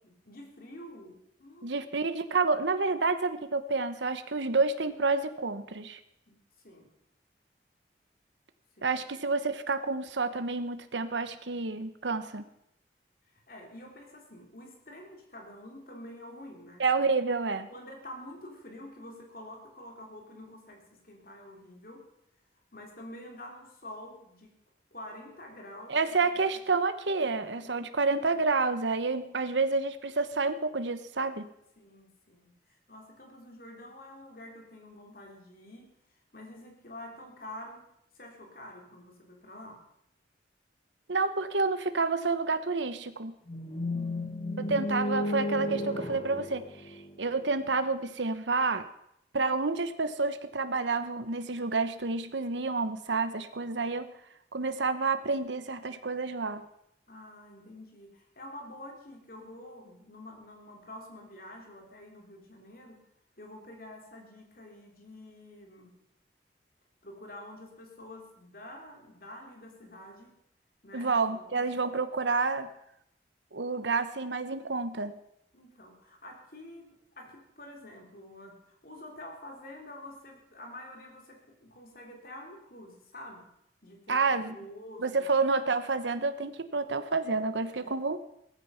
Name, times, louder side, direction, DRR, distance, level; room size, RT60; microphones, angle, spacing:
voice 1, 0.0-1.9 6.3-6.4 6.6-6.9 8.8-9.0 13.5-16.8 17.7-22.1 22.7-24.5 24.9-26.4 27.2-27.3 27.6-27.9 31.8-35.9 36.3-37.8 38.1-39.8 43.9-44.9 57.1-63.0 63.4-66.0 67.0-70.3 70.8-71.5 75.5-83.5 83.8-85.3 87.6-88.0, left 1 dB, 55° left, 1 dB, 3.6 m, -48 dB
voice 2, 1.6-6.0 8.8-12.4 16.8-17.7 25.9-31.4 41.1-43.3 44.7-46.7 47.2-48.8 49.3-54.1 54.5-56.6 70.9-72.7 73.5-75.1 84.1-84.5 85.0-88.2, right 4 dB, 85° right, 10 dB, 1.0 m, -29 dB
sound 1, 43.5-47.6, left 1 dB, 30° left, 1.2 m, -34 dB
16.5 x 14.5 x 5.8 m, 0.77 s
head